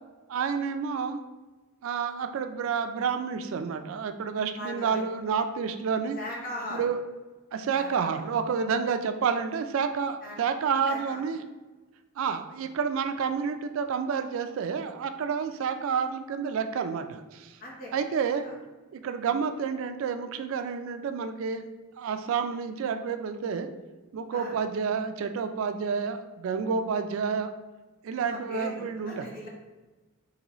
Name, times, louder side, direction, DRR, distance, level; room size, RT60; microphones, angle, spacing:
voice 1, 0.3-1.2 1.8-6.2 6.7-7.0 7.5-11.4 12.2-17.5 17.9-18.5 18.9-21.6 22.0-23.7 24.1-27.5 28.0-29.3, right 6 dB, 70° right, 8 dB, 0.3 m, -29 dB
voice 2, 4.5-5.0 6.2-6.9 7.7-8.2 10.2-10.4 10.9-11.2 17.6-17.9 18.4-18.5 24.3-24.6 28.2-29.5, left 1 dB, 40° left, -3 dB, 0.9 m, -39 dB
3.8 x 3.0 x 3.0 m, 1.2 s
head